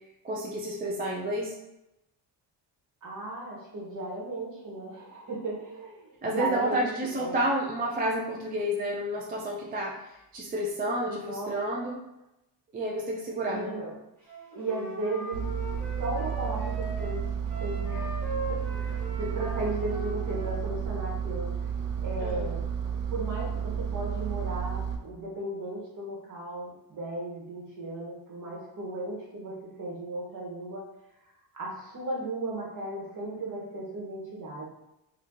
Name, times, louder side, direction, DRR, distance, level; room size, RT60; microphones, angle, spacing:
voice 1, 0.2-1.5 6.2-12.0 12.7-13.8 22.2-22.5, right 1 dB, 25° right, -2 dB, 0.3 m, -30 dB
voice 2, 3.0-6.9 7.1-7.4 11.1-11.5 13.5-13.9 14.5-15.5 16.0-17.3 17.6-21.5 22.0-22.6 23.1-30.8 31.5-34.7, right 2 dB, 45° right, -4 dB, 1.2 m, -35 dB
Wind instrument woodwind instrument, 14.3-20.6, right 1 dB, 5° left, 1.1 m, -40 dB
Engine, 15.3-25.0, right 7 dB, 75° right, 0.6 m, -32 dB
2.8 x 2.4 x 3.6 m, 0.90 s
cardioid pair, 125°, 43 cm